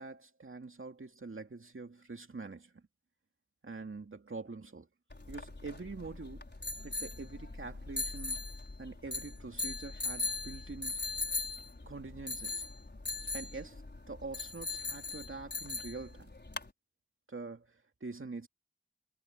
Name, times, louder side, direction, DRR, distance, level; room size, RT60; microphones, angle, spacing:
voice 1, 0.0-2.8 3.6-4.9 5.3-6.5 6.8-8.4 8.8-11.0 11.9-12.6 13.3-13.8 14.1-16.3 17.3-18.5, right 3 dB, 75° right, 2.6 m, -45 dB
sound 1, 5.1-16.7, left 3 dB, 55° left, 5.5 m, -40 dB
wide cardioid pair, 55°, 21 cm